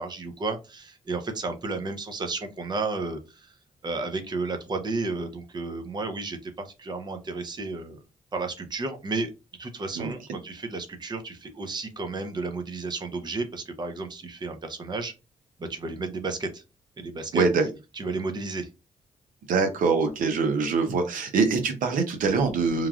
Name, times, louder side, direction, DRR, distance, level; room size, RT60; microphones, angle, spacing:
voice 1, 0.0-3.5 3.8-8.0 8.3-9.3 9.6-15.1 15.6-16.6 17.0-17.4 17.9-18.7, right 3 dB, 30° right, 6 dB, 0.6 m, -32 dB
voice 2, 17.3-17.7 19.5-22.9, right 4 dB, 80° right, 6 dB, 0.6 m, -24 dB
3.1 x 2.3 x 2.3 m, 0.27 s
cardioid pair, 80°, 14 cm